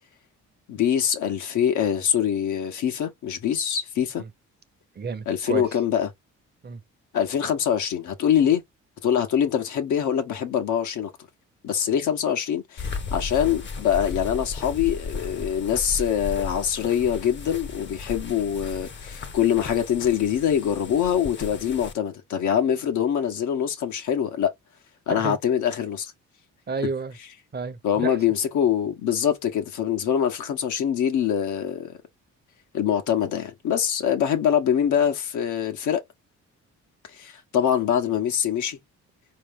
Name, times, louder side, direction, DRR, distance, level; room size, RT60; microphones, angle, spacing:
voice 1, 0.7-4.2 5.3-6.1 7.1-8.6 9.0-11.1 11.6-24.5 25.1-26.1 27.8-31.9 32.7-36.0 37.1-38.8, left 9 dB, 75° left, 1.3 m, -24 dB
voice 2, 5.0-5.6 6.6-6.8 25.1-25.4 26.7-27.1 27.5-28.2, right 4 dB, 35° right, 0.8 m, -31 dB
sound 1, 12.8-21.9, left 4 dB, 40° left, 0.9 m, -35 dB
4.4 x 3.2 x 3.7 m
cardioid pair, 90°, 30 cm